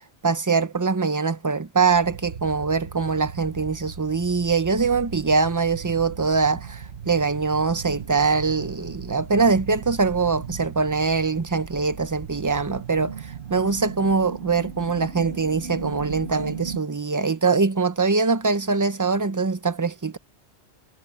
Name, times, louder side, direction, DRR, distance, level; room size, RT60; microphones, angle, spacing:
voice 1, 0.2-20.2, right 4 dB, 20° right, 0.6 m, -23 dB
sound 1, 1.8-16.8, right 7 dB, 70° right, 1.4 m, -37 dB
omnidirectional pair, 1.1 m